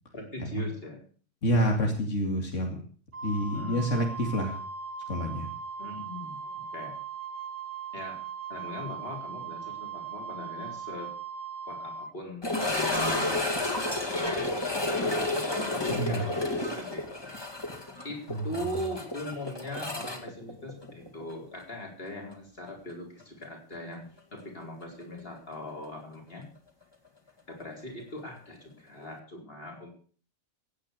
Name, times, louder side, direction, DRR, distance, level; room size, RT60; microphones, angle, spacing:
voice 1, 0.1-1.0 3.5-3.9 5.8-6.9 7.9-8.2 8.5-11.1 11.7-13.4 14.1-17.1 18.0-24.0 24.3-26.5 27.5-29.9, left 1 dB, 50° left, 0 dB, 4.6 m, -40 dB
voice 2, 1.4-2.8 3.2-4.6 5.1-5.5 15.9-16.3 18.3-18.4, equal, 85° left, 2 dB, 2.6 m, -28 dB
Wind instrument woodwind instrument, 3.1-12.1, right 5 dB, 75° right, 1.6 m, -39 dB
sound 1, 12.4-21.3 21.6-21.7 22.3-22.4 25.0-25.1, left 2 dB, 20° left, 2.2 m, -31 dB
16.5 x 8.8 x 6.7 m, 0.43 s
omnidirectional pair, 1.3 m